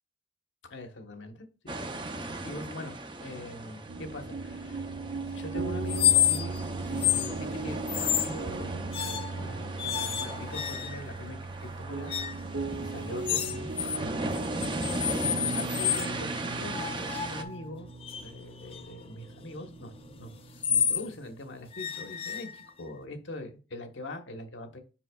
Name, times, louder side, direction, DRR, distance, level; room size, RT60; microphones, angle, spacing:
voice 1, 0.7-1.9 2.4-4.9 5.3-6.6 6.9-12.1 12.8-14.3 15.4-17.9 18.2-19.9 20.2-24.8, left 1 dB, 85° left, 5 dB, 1.3 m, -42 dB
sound 1, 1.7-17.4, right 2 dB, 25° right, 0.6 m, -37 dB
sound 2, 3.9-21.7, right 3 dB, 70° right, 0.6 m, -39 dB
sound 3, 5.9-6.6 7.0-7.3 7.9-8.4 8.9-9.4 9.8-11.2 12.1-12.5 13.3-14.0 14.3-16.1 16.7-21.1 21.7-22.9, left 11 dB, 30° left, 0.4 m, -30 dB
7.5 x 5.9 x 2.4 m, 0.33 s
head